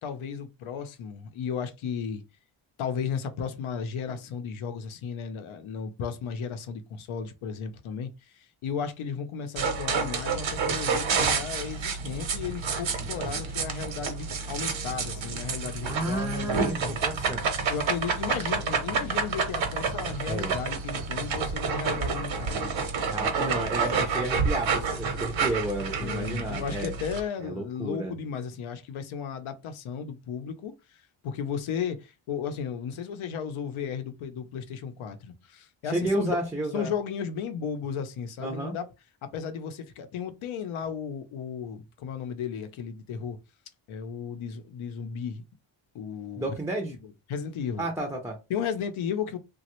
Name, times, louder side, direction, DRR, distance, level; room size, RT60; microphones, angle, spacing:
voice 1, 0.0-2.2 2.8-17.0 17.7-23.0 23.3-23.6 26.0-36.4 36.7-38.9 39.2-43.4 43.9-45.4 45.9-46.5 47.0-47.9 48.5-49.4, left 7 dB, 85° left, 0.7 m, -34 dB
sound 1, 9.6-27.2, right 5 dB, 70° right, 0.9 m, -29 dB
voice 2, 15.8-17.4 20.3-20.6 23.1-26.9 27.4-28.1 35.8-36.9 38.4-38.8 46.4-46.9 47.8-48.4, right 2 dB, 5° right, 0.4 m, -31 dB
3.1 x 2.3 x 2.9 m
wide cardioid pair, 135°, 48 cm